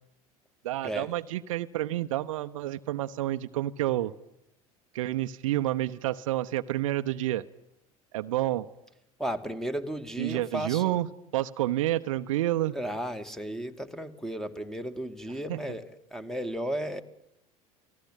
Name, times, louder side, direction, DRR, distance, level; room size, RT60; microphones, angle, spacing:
voice 1, 0.6-4.1 4.9-7.4 8.1-8.7 10.2-12.7 15.5-15.6, right 14 dB, 65° right, 11 dB, 0.9 m, -29 dB
voice 2, 9.2-11.0 12.7-17.0, right 1 dB, ahead, 10 dB, 2.1 m, -34 dB
28.5 x 18.5 x 9.0 m, 0.85 s
figure-of-eight pair, 70°, 18 cm